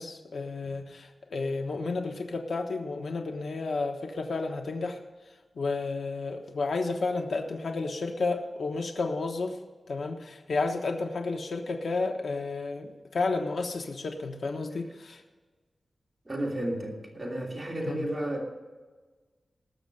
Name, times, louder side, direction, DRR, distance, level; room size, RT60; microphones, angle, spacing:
voice 1, 0.0-5.0 5.6-9.6 9.9-15.2 17.9-18.1, left 3 dB, 80° left, 4 dB, 1.2 m, -31 dB
voice 2, 16.3-18.5, right 1 dB, 20° right, -1 dB, 2.9 m, -32 dB
19.0 x 6.7 x 6.6 m, 1.3 s
wide cardioid pair, 105°, 0 cm